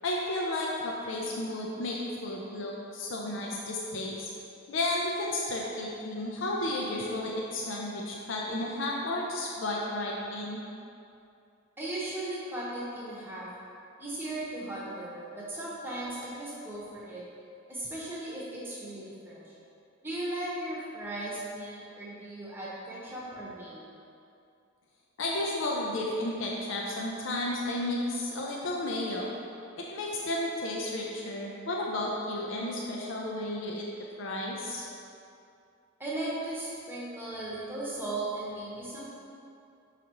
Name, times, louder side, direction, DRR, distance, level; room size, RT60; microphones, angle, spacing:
voice 1, 0.0-4.3 4.7-10.6 25.2-29.3 29.8-33.8 34.2-34.9, left 1 dB, 70° left, -2 dB, 0.6 m, -32 dB
voice 2, 11.8-13.5 14.0-17.2 17.7-19.4 20.0-23.9 36.0-39.2, right 1 dB, 10° right, -7 dB, 1.0 m, -37 dB
6.5 x 5.0 x 2.9 m, 2.6 s
head